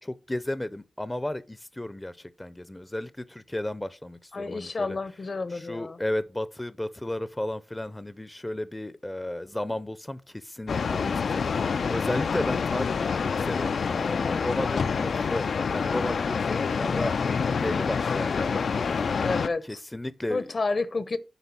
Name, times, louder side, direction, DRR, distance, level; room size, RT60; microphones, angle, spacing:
voice 1, 0.0-5.0 5.5-15.4 15.7-17.1 17.5-18.9 19.6-20.5, left 1 dB, 15° left, 0.5 m, -34 dB
voice 2, 4.3-6.0 13.9-14.5 16.4-17.0 19.2-19.8 20.3-21.2, left 3 dB, 50° left, 0.8 m, -31 dB
sound 1, 10.7-19.5, left 5 dB, 75° left, 0.4 m, -27 dB
8.1 x 5.1 x 5.8 m
wide cardioid pair, 90°, 0 cm